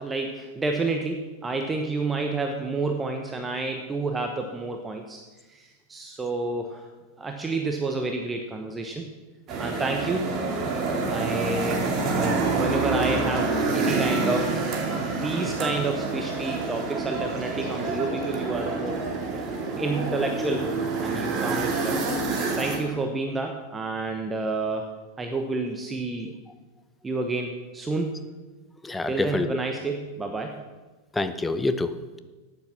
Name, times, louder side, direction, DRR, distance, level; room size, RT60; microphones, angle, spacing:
voice 1, 0.0-5.2 5.5-6.9 7.2-9.1 9.6-10.3 11.1-14.7 15.1-19.0 19.8-22.0 22.4-24.9 25.2-26.3 27.0-28.2 29.1-30.6, right 3 dB, 15° right, 4 dB, 1.0 m, -29 dB
sound 1, 9.5-22.8, right 3 dB, 30° right, 2.4 m, -27 dB
voice 2, 28.8-29.6 31.2-32.2, left 3 dB, 10° left, 11 dB, 0.7 m, -27 dB
12.0 x 8.8 x 6.0 m, 1.2 s
figure-of-eight pair, 90°, 0 cm